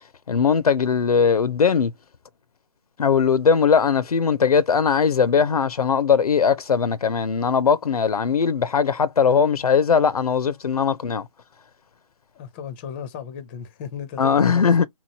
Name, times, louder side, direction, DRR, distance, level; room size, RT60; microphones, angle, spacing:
voice 1, 0.3-1.9 3.0-11.3 14.2-14.9, left 6 dB, 90° left, 0.6 m, -19 dB
voice 2, 12.3-14.9, left 7 dB, 20° left, 0.5 m, -35 dB
3.6 x 3.1 x 2.7 m
hypercardioid pair, 155°, 19 cm